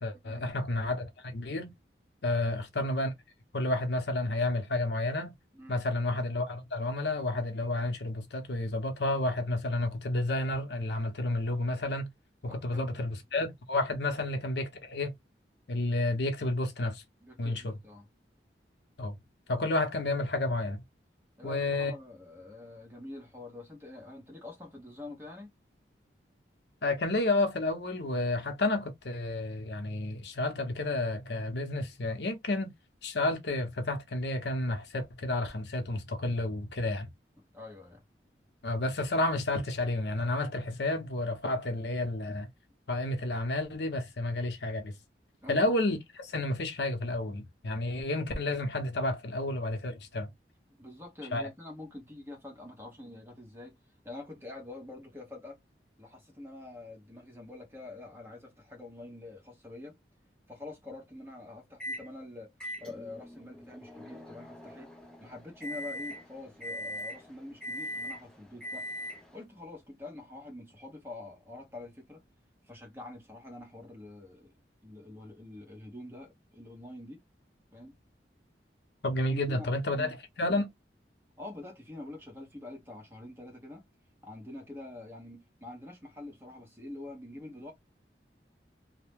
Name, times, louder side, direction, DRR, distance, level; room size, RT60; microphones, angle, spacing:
voice 1, 0.0-1.7 2.2-3.1 3.5-5.3 5.7-12.1 12.4-15.1 15.7-17.0 17.4-17.8 19.0-19.2 19.5-20.8 21.4-21.9 26.8-32.7 33.0-37.1 38.6-42.5 42.9-44.9 45.5-50.3 51.3-51.5 79.0-80.7, left 2 dB, 75° left, 0.8 m, -31 dB
voice 2, 5.5-5.9 12.5-13.1 17.2-18.1 21.4-25.5 37.5-38.0 45.4-45.7 50.8-53.8 54.0-55.6 56.0-59.9 60.5-62.5 62.8-64.9 65.2-68.9 69.3-72.2 72.6-74.5 74.8-77.2 77.7-78.0 79.3-80.1 81.4-83.8 84.2-87.7, left 2 dB, 15° right, 1.1 m, -46 dB
Microwave oven, 61.8-62.1 62.6-69.4, equal, 5° left, 0.6 m, -41 dB
2.8 x 2.1 x 3.3 m
head